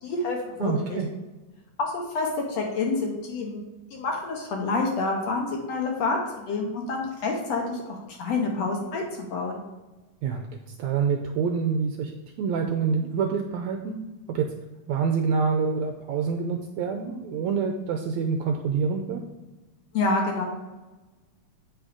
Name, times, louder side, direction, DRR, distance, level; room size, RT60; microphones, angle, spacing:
voice 1, 0.0-1.0 1.8-3.6 3.9-9.6 19.9-20.4, left 3 dB, 65° left, 1 dB, 1.9 m, -28 dB
voice 2, 0.6-1.1 10.2-12.1 12.4-14.0 14.3-14.5 14.9-19.2, right 5 dB, 80° right, 4 dB, 1.7 m, -26 dB
8.3 x 6.2 x 5.0 m, 1.2 s
omnidirectional pair, 3.8 m